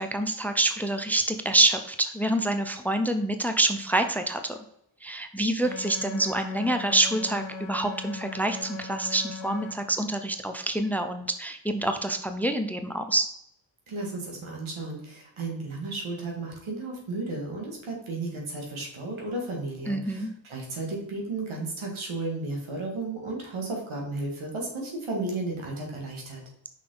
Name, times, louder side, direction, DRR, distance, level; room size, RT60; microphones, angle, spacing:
voice 1, 0.0-4.6 5.0-13.3 19.9-20.3, right 2 dB, 5° left, 7 dB, 0.6 m, -26 dB
sound 1, 5.6-9.7, left 4 dB, 70° left, 0.9 m, -39 dB
voice 2, 13.9-26.4, right 2 dB, 85° right, -1 dB, 2.3 m, -34 dB
5.8 x 5.7 x 3.9 m, 0.76 s
cardioid pair, 70°, 47 cm